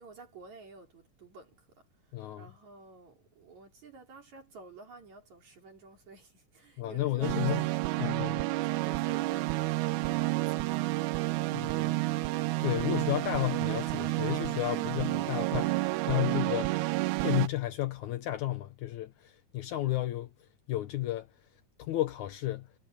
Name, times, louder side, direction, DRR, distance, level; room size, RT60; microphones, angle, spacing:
voice 1, 0.0-7.7 8.6-9.8 10.0-11.0, right 4 dB, 65° right, 5.0 m, -52 dB
voice 2, 2.1-2.5 6.8-7.6 8.0-8.5 11.5-12.0 12.6-16.8 17.2-20.3 20.7-21.3 21.8-22.7, left 15 dB, 75° left, 2.4 m, -32 dB
sound 1, 7.2-17.5, right 21 dB, 80° right, 1.9 m, -30 dB
omnidirectional pair, 3.5 m